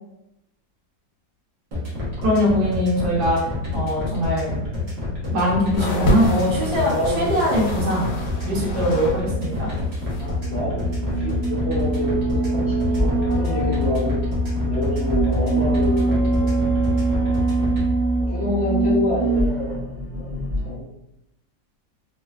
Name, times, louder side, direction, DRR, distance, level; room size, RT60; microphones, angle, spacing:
sound 1, 1.7-17.8, left 3 dB, 55° right, 0.7 m, -28 dB
voice 1, 2.2-3.4 3.7-4.6 5.3-8.1 8.4-9.7, equal, 70° right, -5 dB, 1.3 m, -22 dB
sound 2, 5.8-9.2 9.5-10.4 11.1-11.2, equal, 75° left, 1.2 m, -27 dB
voice 2, 6.7-7.2 10.2-10.8 11.1-12.7 13.0-14.1 14.7-16.5 18.3-19.8 20.2-20.3 20.6-20.8, left 1 dB, 55° left, -10 dB, 0.8 m, -27 dB
sound 3, 7.9-20.7, right 2 dB, 25° right, 0.8 m, -24 dB
3.2 x 2.1 x 2.3 m, 0.84 s
omnidirectional pair, 2.0 m